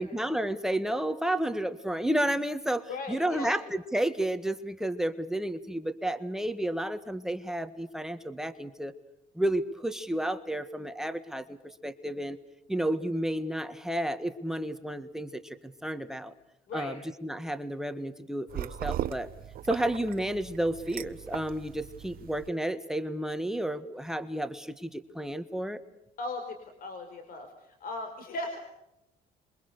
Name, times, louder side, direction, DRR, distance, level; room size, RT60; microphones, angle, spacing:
voice 1, 0.0-8.9 9.3-11.6 11.8-12.4 12.7-16.3 16.7-19.3 19.7-25.8, right 1 dB, 5° right, 8 dB, 1.6 m, -31 dB
voice 2, 2.9-3.5 16.7-17.0 26.2-28.6, left 2 dB, 60° left, 6 dB, 4.2 m, -38 dB
sound 1, 18.5-22.5, right 11 dB, 60° right, 1.0 m, -38 dB
27.5 x 23.5 x 6.7 m, 0.87 s
cardioid pair, 110°, 17 cm